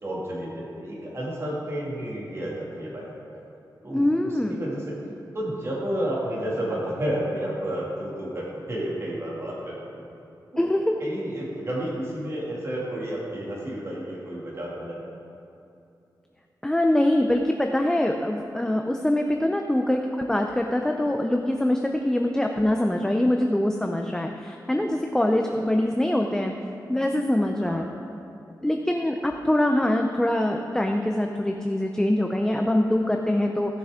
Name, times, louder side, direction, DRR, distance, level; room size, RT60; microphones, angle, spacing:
voice 1, 0.0-3.4 3.8-5.0 5.3-10.1 10.5-10.7 11.0-15.2 25.5-25.6 27.6-28.0, right 1 dB, 35° right, -5 dB, 2.4 m, -31 dB
voice 2, 3.9-4.6 10.6-11.0 16.6-26.5 26.9-27.9 28.6-33.8, left 1 dB, 5° left, 3 dB, 0.5 m, -24 dB
17.0 x 7.0 x 3.7 m, 2.7 s
wide cardioid pair, 105°, 8 cm